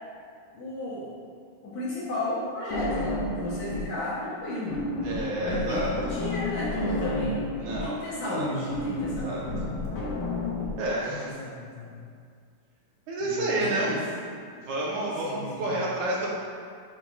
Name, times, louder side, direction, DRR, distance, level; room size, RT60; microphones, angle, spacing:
voice 1, 0.5-1.1 1.6-4.8 5.4-7.4 7.7-10.0 11.1-12.0 13.2-14.0 15.2-15.7, left 1 dB, 65° left, -8 dB, 1.9 m, -33 dB
sound 1, 2.7-4.0 4.2-10.7, left 2 dB, 85° left, 2.7 m, -31 dB
voice 2, 5.0-5.9 7.6-8.0 8.3-8.5 9.1-9.4 10.8-11.3 13.1-14.0 14.6-16.3, right 1 dB, 75° right, -5 dB, 2.2 m, -29 dB
8.1 x 5.4 x 2.4 m, 2.2 s
omnidirectional pair, 3.8 m